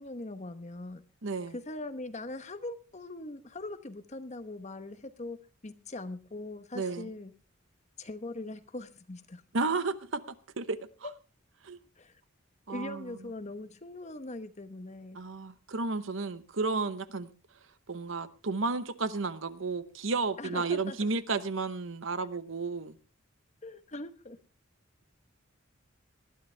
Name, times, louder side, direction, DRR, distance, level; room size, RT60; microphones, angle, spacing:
voice 1, 0.0-1.0 1.5-5.4 5.6-7.3 8.0-9.4 11.0-11.1 12.0-12.1 12.7-15.2 20.4-21.0 23.6-24.4, left 2 dB, 35° left, 1.1 m, -41 dB
voice 2, 1.2-1.5 6.7-7.1 9.5-10.2 10.6-10.9 11.6-11.8 12.7-13.1 15.1-17.3 17.9-23.0, right 3 dB, 70° right, 0.9 m, -32 dB
19.5 x 12.5 x 3.4 m
head